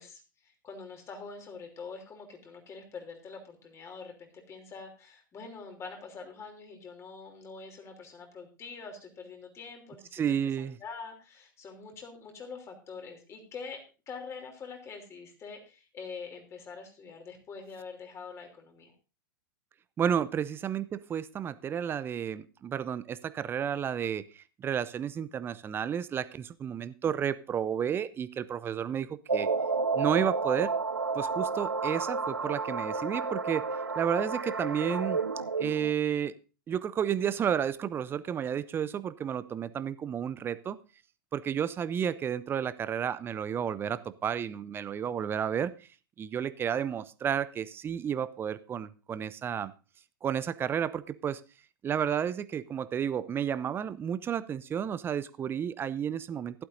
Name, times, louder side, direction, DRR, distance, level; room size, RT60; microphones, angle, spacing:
voice 1, 0.0-13.8 14.1-18.9, left 5 dB, 25° left, 3 dB, 3.2 m, -45 dB
voice 2, 10.1-10.8 20.0-29.5 29.9-30.7 31.1-33.7 34.0-35.2 35.6-36.3 36.7-40.8 41.3-45.7 46.2-49.7 50.2-51.4 51.8-56.6, right 8 dB, 20° right, 15 dB, 0.6 m, -31 dB
sound 1, 29.3-35.9, right 4 dB, 90° right, 0.7 m, -31 dB
15.5 x 11.5 x 2.6 m, 0.32 s
figure-of-eight pair, 100°, 11 cm